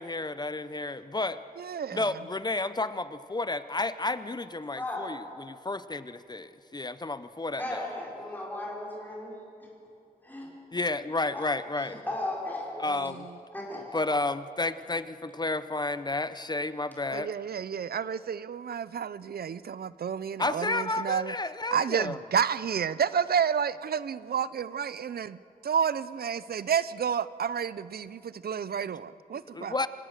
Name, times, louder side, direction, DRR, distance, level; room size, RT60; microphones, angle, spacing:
voice 1, 0.0-1.4 1.9-7.8 10.7-12.0 12.8-13.3 13.9-17.3 20.4-22.2 29.5-29.9, left 2 dB, 25° left, 13 dB, 0.6 m, -31 dB
voice 2, 1.6-2.1 13.0-13.3 17.1-21.3 21.7-25.4 25.6-29.7, right 7 dB, 85° right, 17 dB, 0.5 m, -30 dB
voice 3, 4.8-5.1 7.6-9.4 10.2-10.5 11.3-11.5 11.8-13.0 13.5-13.8, left 1 dB, 10° left, -4 dB, 4.9 m, -36 dB
27.0 x 16.5 x 6.5 m, 2.5 s
wide cardioid pair, 115°, 16 cm